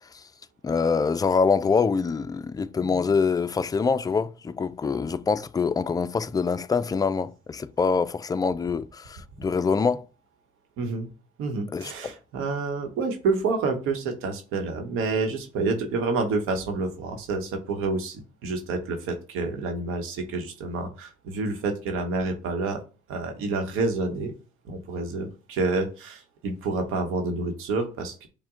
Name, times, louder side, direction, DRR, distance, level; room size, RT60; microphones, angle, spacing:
voice 1, 0.6-10.0 11.7-12.1, left 5 dB, 20° left, 0.3 m, -25 dB
voice 2, 10.8-11.1 11.4-22.8 23.1-24.3 24.6-28.3, right 3 dB, 85° right, 1.0 m, -28 dB
6.0 x 2.2 x 3.7 m
supercardioid pair, 75°, 21 cm